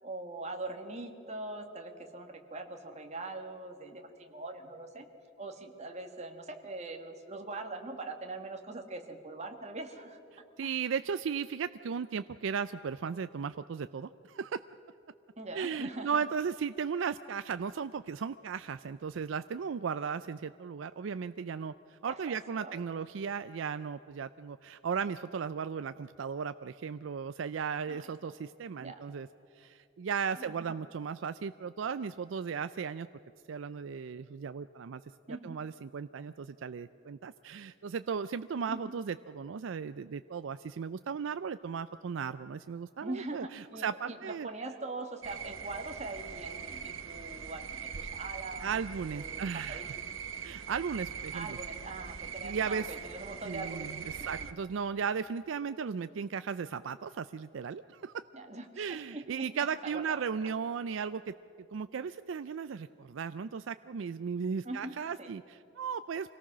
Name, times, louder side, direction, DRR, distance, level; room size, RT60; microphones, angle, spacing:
voice 1, 0.0-5.1 5.4-10.2 15.4-16.2 22.1-22.8 27.9-28.1 28.8-29.0 30.4-30.7 35.3-35.6 38.7-38.9 43.0-48.8 49.1-49.9 51.3-53.9 54.2-54.5 58.3-59.5 59.8-60.2 64.6-65.3, right 2 dB, 35° right, 4 dB, 1.7 m, -42 dB
voice 2, 10.6-14.6 15.5-29.3 29.5-33.1 33.5-35.0 35.3-44.5 48.6-49.8 50.4-51.6 52.4-52.9 53.4-58.1 58.8-61.3 61.7-66.3, right 6 dB, 70° right, 12 dB, 0.4 m, -36 dB
sound 1, 45.2-54.5, right 7 dB, 85° right, 0.9 m, -42 dB
25.5 x 18.0 x 6.2 m, 2.9 s
head